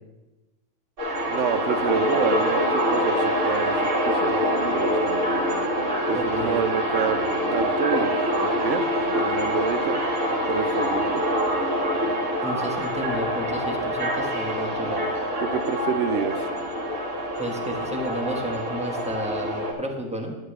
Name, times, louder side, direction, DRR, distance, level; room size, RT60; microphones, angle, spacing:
sound 1, 1.0-19.7, equal, 45° right, 1.6 m, -25 dB
voice 1, 1.3-4.4 4.7-5.1 6.1-8.9 9.2-10.0 10.5-11.2 15.4-16.5, right 8 dB, 70° right, 10 dB, 0.9 m, -28 dB
voice 2, 6.1-6.6 12.4-15.1 17.4-20.4, right 1 dB, 5° right, -1 dB, 1.2 m, -31 dB
10.5 x 8.1 x 3.3 m, 1.1 s
omnidirectional pair, 1.4 m